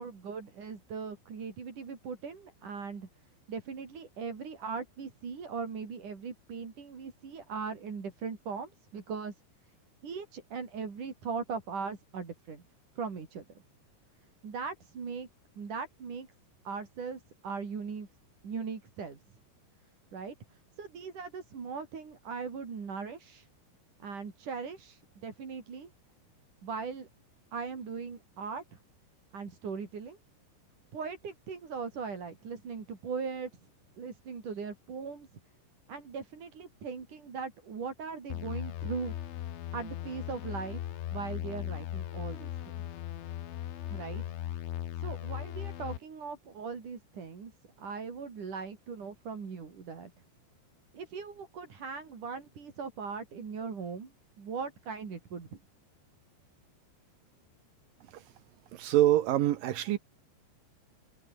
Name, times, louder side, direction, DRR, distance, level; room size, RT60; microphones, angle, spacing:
voice 1, 0.0-3.1 3.5-9.4 10.0-12.6 13.0-13.5 14.4-15.3 15.6-16.3 16.7-18.1 18.4-19.2 20.1-23.5 24.0-25.9 26.6-27.1 27.5-28.8 29.3-30.2 30.9-33.5 34.0-35.3 35.9-39.1 39.7-42.8 43.9-44.2 45.0-47.5 47.8-50.1 50.9-55.6, right 5 dB, 45° right, 5.2 m, -39 dB
sound 1, 38.3-46.0, left 12 dB, 80° left, 4.4 m, -38 dB
voice 2, 58.8-60.0, right 13 dB, 80° right, 2.0 m, -25 dB
omnidirectional pair, 5.4 m